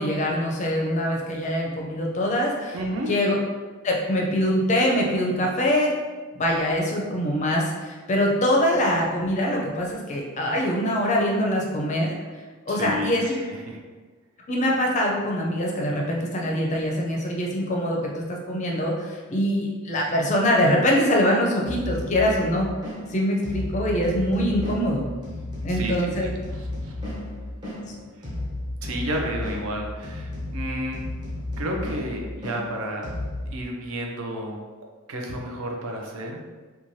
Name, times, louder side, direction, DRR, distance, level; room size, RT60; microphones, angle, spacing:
voice 1, 0.0-2.8 3.1-3.4 3.8-5.9 6.3-12.1 12.7-13.4 14.5-22.7 23.1-25.0 25.6-26.3, equal, 35° left, -1 dB, 0.4 m, -23 dB
voice 2, 2.7-3.1 12.7-13.8 25.7-27.1 28.8-31.0 31.6-33.1 33.5-34.6 35.1-36.4, right 1 dB, 70° right, 1 dB, 0.5 m, -32 dB
sound 1, 21.6-33.5, left 1 dB, 20° right, 0.6 m, -33 dB
3.0 x 2.2 x 2.6 m, 1.4 s
head